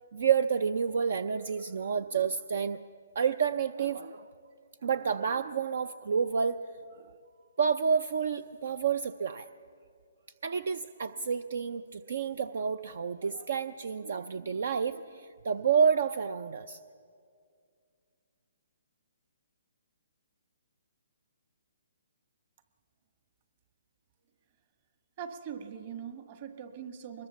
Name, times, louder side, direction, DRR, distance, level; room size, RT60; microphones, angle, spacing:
voice 1, 0.1-2.8 3.1-4.3 4.8-6.6 7.0-7.1 7.6-9.5 10.4-16.8, right 6 dB, 65° right, 13 dB, 0.6 m, -29 dB
voice 2, 25.2-27.3, right 8 dB, 40° right, 7 dB, 1.7 m, -41 dB
23.5 x 21.0 x 7.1 m, 2.3 s
hypercardioid pair, 155°, 0 cm